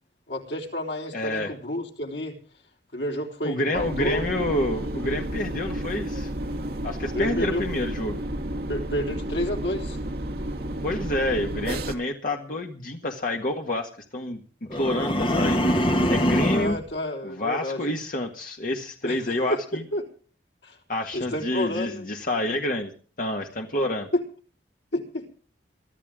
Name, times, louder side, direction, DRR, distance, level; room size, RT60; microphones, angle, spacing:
voice 1, 0.3-2.4 2.9-4.3 7.1-7.6 8.7-10.0 16.5-17.8 19.0-20.0 20.6-20.8 21.1-22.1 24.1-24.2 24.9-25.3, left 1 dB, 85° left, 2 dB, 3.8 m, -30 dB
voice 2, 1.1-1.5 3.4-6.3 6.8-8.2 10.8-14.4 14.7-15.6 16.1-16.8 17.2-19.8 20.9-22.9 23.2-24.1, left 1 dB, 50° left, 3 dB, 1.7 m, -28 dB
sound 1, 3.7-11.9, right 1 dB, 60° right, 1.4 m, -31 dB
sound 2, 14.7-16.8, equal, 30° left, 1.6 m, -23 dB
23.0 x 13.5 x 3.7 m, 0.41 s
head